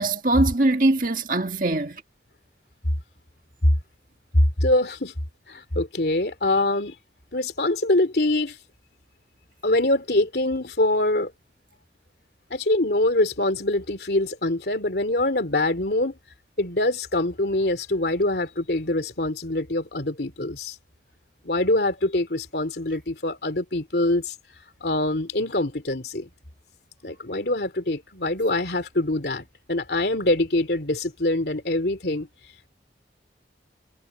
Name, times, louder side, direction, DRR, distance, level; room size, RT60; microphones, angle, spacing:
voice 1, 0.0-2.0, right 2 dB, 50° right, 1.8 m, -22 dB
voice 2, 4.6-5.1 5.5-6.9 7.3-8.6 9.6-11.3 12.5-16.1 16.6-20.7 21.4-24.3 24.8-26.3 27.0-32.3, left 2 dB, 65° left, 2.9 m, -24 dB
head